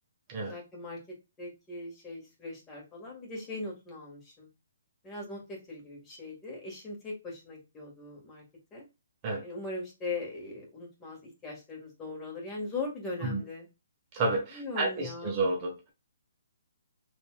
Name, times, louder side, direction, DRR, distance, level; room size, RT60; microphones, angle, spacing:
voice 1, 0.4-1.0 1.4-4.5 5.0-8.4 8.7-8.8 9.4-13.7 14.5-15.4, left 3 dB, 15° left, 1.9 m, -40 dB
voice 2, 14.1-15.9, right 2 dB, 30° right, 1.2 m, -30 dB
4.5 x 3.3 x 2.3 m
figure-of-eight pair, 135°, 0 cm